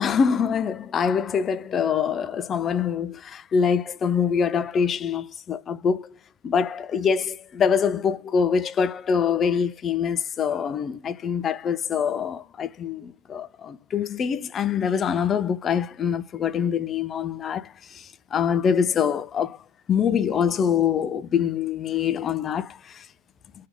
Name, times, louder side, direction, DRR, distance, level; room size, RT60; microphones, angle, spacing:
voice 1, 0.0-6.1 6.4-19.6 19.9-23.1, left 7 dB, 25° left, 0.4 m, -24 dB
4.5 x 2.7 x 3.5 m
figure-of-eight pair, 90°, 0 cm